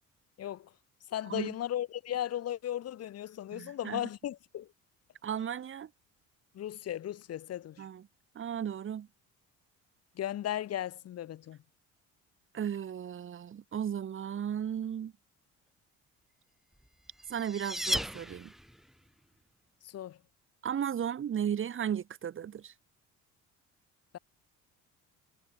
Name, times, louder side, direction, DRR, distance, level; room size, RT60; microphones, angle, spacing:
voice 1, 0.4-0.7 1.1-4.7 6.5-7.8 10.2-11.6 19.9-20.2, left 11 dB, 50° left, 1.7 m, -36 dB
voice 2, 3.5-4.0 5.2-5.9 7.8-8.1 8.4-9.1 12.5-15.1 17.3-18.5 20.6-22.7, right 9 dB, 40° right, 2.1 m, -35 dB
sound 1, 16.8-18.9, equal, ahead, 1.3 m, -35 dB
cardioid pair, 115°, 31 cm